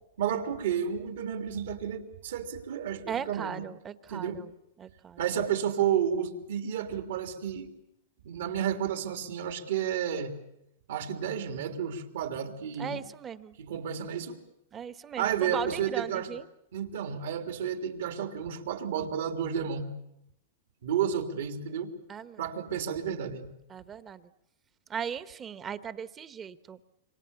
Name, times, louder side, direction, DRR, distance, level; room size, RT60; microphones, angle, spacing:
voice 1, 0.2-3.7 4.1-4.4 5.2-7.7 8.2-10.3 10.9-13.0 13.6-14.4 15.2-16.3 16.7-19.9 20.8-21.9 22.4-23.5, right 8 dB, 75° right, 6 dB, 3.2 m, -31 dB
voice 2, 3.1-4.5 4.8-5.2 12.8-13.6 14.7-16.4 22.1-22.4 23.7-24.3 24.9-26.8, right 7 dB, 25° right, 13 dB, 1.2 m, -38 dB
27.0 x 24.5 x 7.0 m, 0.84 s
hypercardioid pair, 125°, 0 cm